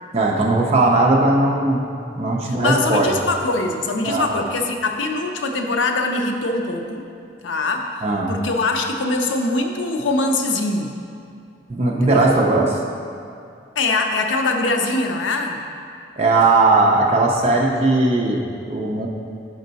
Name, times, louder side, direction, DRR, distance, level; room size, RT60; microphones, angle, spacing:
voice 1, 0.1-1.8 2.2-3.2 4.0-4.3 8.0-8.3 11.7-12.7 16.2-19.1, right 2 dB, 35° right, -1 dB, 0.5 m, -18 dB
voice 2, 2.5-7.1 7.4-7.9 8.3-11.0 12.0-12.4 13.8-15.6, left 2 dB, 85° left, 4 dB, 0.5 m, -22 dB
5.5 x 5.1 x 4.0 m, 2.5 s
head